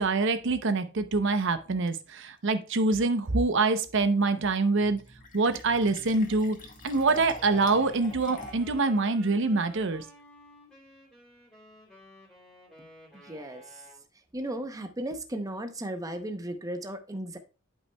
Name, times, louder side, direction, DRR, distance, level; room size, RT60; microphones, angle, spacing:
voice 1, 0.0-5.0 5.3-6.6 6.8-10.0, right 3 dB, 60° right, 0.7 m, -25 dB
Fill (with liquid), 4.8-8.8, left 1 dB, 40° left, 1.4 m, -46 dB
Wind instrument woodwind instrument, 6.9-14.0, equal, 5° left, 2.8 m, -53 dB
voice 2, 13.1-13.8 14.3-17.4, right 1 dB, 15° right, 0.7 m, -35 dB
11.5 x 5.5 x 2.2 m
head